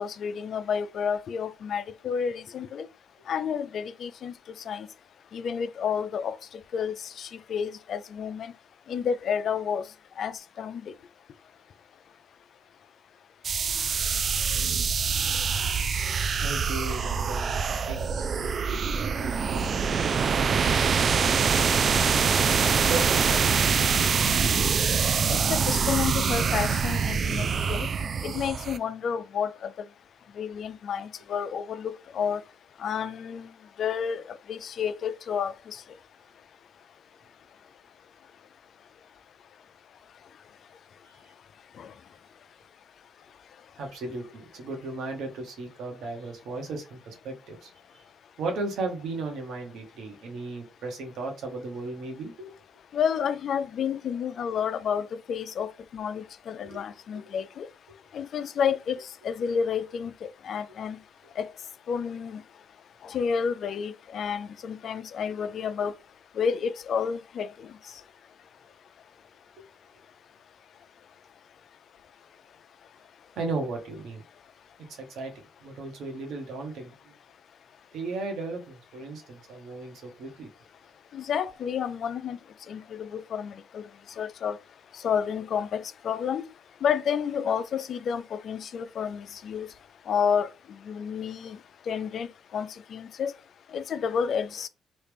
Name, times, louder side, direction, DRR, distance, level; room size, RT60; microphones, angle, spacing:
voice 1, 0.0-2.9 3.3-4.3 4.7-4.9 5.3-6.4 6.7-8.5 8.9-9.8 10.2-10.8 25.3-27.9 28.2-29.7 30.4-32.4 32.8-33.5 33.8-35.8 41.8-41.9 52.9-57.7 58.1-59.0 59.2-61.0 61.4-61.5 61.9-62.4 63.0-65.9 66.4-67.5 81.1-82.4 82.7-83.8 84.2-84.6 85.0-86.5 86.8-89.7 90.1-90.5 90.9-91.6 91.9-92.3 92.5-93.3 93.7-94.7, left 7 dB, 60° left, 0.4 m, -30 dB
sound 1, 13.4-28.8, right 6 dB, 50° right, 0.3 m, -25 dB
voice 2, 16.4-18.3 19.0-20.0 20.3-22.0 22.6-24.4 43.8-48.0 48.4-52.5 56.6-56.8 57.1-57.2 69.6-69.7 73.4-74.2 74.9-75.3 75.6-77.1 77.9-80.5, right 3 dB, 75° right, 1.2 m, -36 dB
3.2 x 2.4 x 3.4 m
cardioid pair, 90°, 0 cm